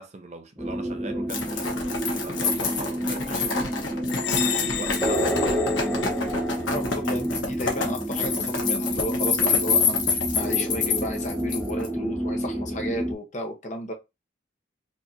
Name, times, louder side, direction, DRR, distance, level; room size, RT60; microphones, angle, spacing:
voice 1, 0.0-1.9 2.1-4.0 4.4-5.8, right 2 dB, 35° right, 0.6 m, -40 dB
sound 1, 0.6-13.1, right 1 dB, ahead, 1.3 m, -29 dB
sound 2, 1.3-11.9, left 5 dB, 75° left, 1.3 m, -27 dB
sound 3, 4.1-6.7, left 11 dB, 60° left, 0.5 m, -32 dB
voice 2, 6.7-13.9, equal, 40° left, 1.0 m, -33 dB
4.6 x 2.8 x 2.7 m
head